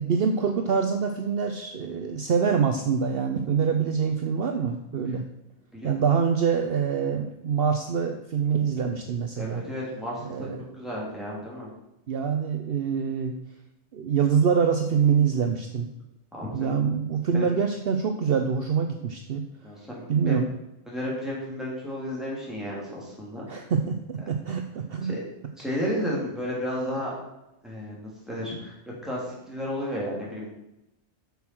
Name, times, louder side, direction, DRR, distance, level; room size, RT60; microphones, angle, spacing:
voice 1, 0.0-5.2 5.8-9.6 10.2-10.7 12.1-13.3 13.9-15.9 16.5-19.4 20.1-20.5 23.5-25.1, right 6 dB, 60° right, 5 dB, 0.9 m, -25 dB
voice 2, 9.3-10.5 10.7-11.7 16.3-16.7 17.3-17.4 19.6-20.4 20.9-23.5 25.0-25.2 25.6-27.1 27.6-28.7 29.0-30.5, equal, ahead, -6 dB, 3.3 m, -32 dB
6.9 x 6.4 x 6.1 m, 0.89 s
omnidirectional pair, 1.2 m